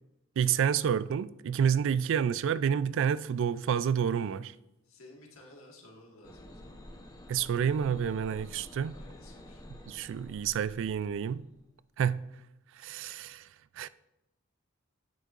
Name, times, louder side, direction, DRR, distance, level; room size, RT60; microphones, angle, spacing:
voice 1, 0.4-4.5 7.3-8.9 9.9-11.4 12.0-12.2 12.8-13.5 13.8-13.9, right 8 dB, 65° right, 0.3 m, -29 dB
voice 2, 4.8-6.8 8.9-9.6, left 1 dB, 80° left, 1.8 m, -54 dB
sound 1, 6.2-11.6, left 1 dB, 20° left, 0.8 m, -50 dB
9.4 x 8.3 x 2.5 m
head